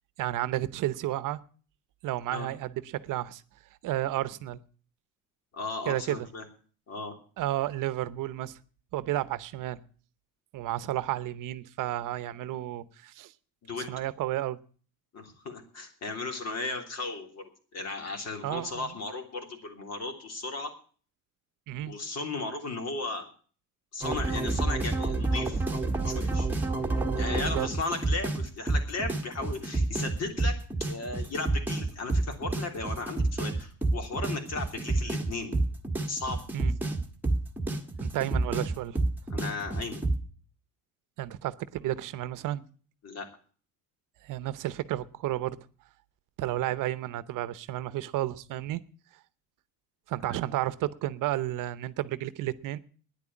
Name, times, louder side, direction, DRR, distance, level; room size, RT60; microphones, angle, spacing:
voice 1, 0.2-1.4 2.0-3.4 3.8-4.6 5.9-6.3 7.4-8.6 8.9-9.8 10.5-13.3 13.9-14.6 18.4-18.9 21.7-21.9 27.4-27.7 36.5-36.8 38.0-39.0 41.2-42.7 44.2-45.6 46.4-48.8 50.1-52.8, right 14 dB, 70° right, 0.8 m, -32 dB
voice 2, 5.5-6.4 6.9-7.1 13.6-13.9 15.1-20.7 21.9-23.3 23.9-25.6 26.1-26.5 27.1-35.6 36.1-36.4 39.3-40.0 43.0-43.3 50.3-50.4, left 3 dB, 50° left, 3.2 m, -36 dB
sound 1, 24.0-40.2, right 2 dB, 5° right, 1.7 m, -29 dB
10.0 x 8.4 x 9.8 m
cardioid pair, 115°, 33 cm